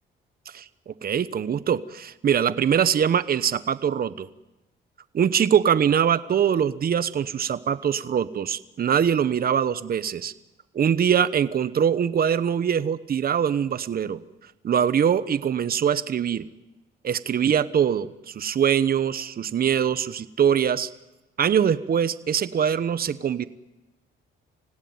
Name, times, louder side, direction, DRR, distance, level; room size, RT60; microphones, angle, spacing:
voice 1, 0.5-4.3 5.1-10.3 10.7-14.2 14.6-16.5 17.0-20.9 21.4-23.5, right 8 dB, 50° right, 14 dB, 1.0 m, -23 dB
26.0 x 17.0 x 9.5 m, 1.1 s
cardioid pair, 90°, 20 cm